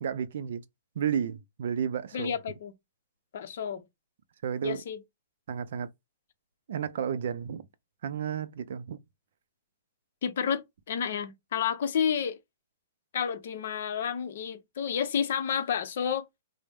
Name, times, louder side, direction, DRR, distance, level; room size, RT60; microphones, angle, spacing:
voice 1, 0.0-0.6 1.0-2.3 4.4-4.8 5.5-5.9 6.7-7.6 8.0-9.0, right 8 dB, 60° right, 0.4 m, -32 dB
voice 2, 2.1-2.7 3.3-3.8 4.6-5.0 10.2-12.4 13.1-16.3, left 7 dB, 55° left, 0.6 m, -30 dB
4.0 x 2.0 x 3.5 m
hypercardioid pair, 175°, 0 cm